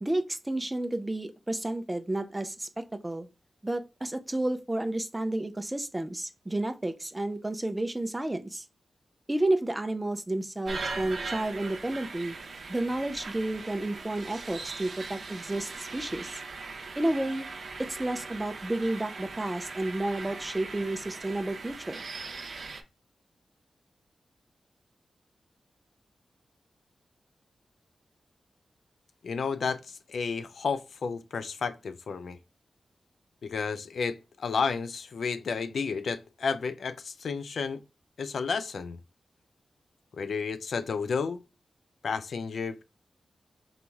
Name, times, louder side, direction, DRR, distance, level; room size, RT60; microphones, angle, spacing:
voice 1, 0.0-2.7 3.0-3.3 3.6-8.6 9.3-12.4 12.7-16.3 17.0-17.5 17.8-22.0, right 1 dB, 15° right, 0.5 m, -31 dB
sound 1, 10.7-22.8, right 4 dB, 60° right, 0.7 m, -40 dB
voice 2, 29.2-32.4 33.4-37.8 38.2-39.0 40.2-41.4 42.0-42.8, left 5 dB, 75° left, 0.4 m, -32 dB
4.0 x 3.0 x 3.5 m
wide cardioid pair, 140°, 0 cm